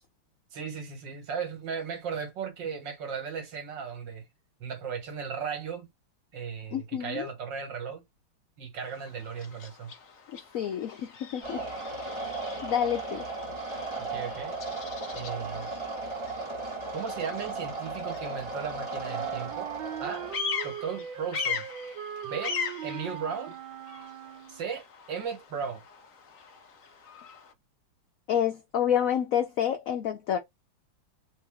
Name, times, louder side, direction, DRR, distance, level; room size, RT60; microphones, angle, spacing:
voice 1, 0.5-4.2 4.6-5.9 6.3-8.0 8.6-9.9 14.0-14.6 15.1-15.7 16.9-19.7 20.0-20.3 20.6-21.7 22.2-23.6 24.5-25.8, right 6 dB, 70° right, 2.0 m, -36 dB
voice 2, 6.7-7.3 10.5-11.6 12.2-12.3 12.6-13.3 28.3-30.4, left 9 dB, 90° left, 0.7 m, -28 dB
Bird vocalization bird call bird song, 8.8-27.5, left 6 dB, 55° left, 1.1 m, -41 dB
sound 1, 11.4-20.4, right 3 dB, 20° right, 1.1 m, -36 dB
Wind instrument woodwind instrument, 18.9-24.7, right 10 dB, 90° right, 1.5 m, -40 dB
3.9 x 2.6 x 3.5 m
omnidirectional pair, 2.1 m